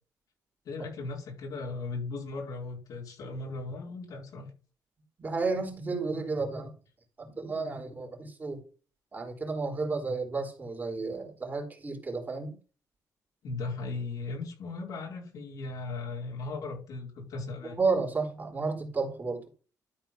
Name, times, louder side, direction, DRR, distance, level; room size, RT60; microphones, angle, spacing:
voice 1, 0.6-4.5 13.4-17.8, left 3 dB, 70° left, -2 dB, 4.6 m, -37 dB
voice 2, 5.2-6.7 7.2-8.6 9.1-12.6 17.6-19.5, right 4 dB, 30° right, 1 dB, 3.8 m, -32 dB
13.0 x 4.5 x 5.8 m, 0.36 s
cardioid pair, 110°, 7 cm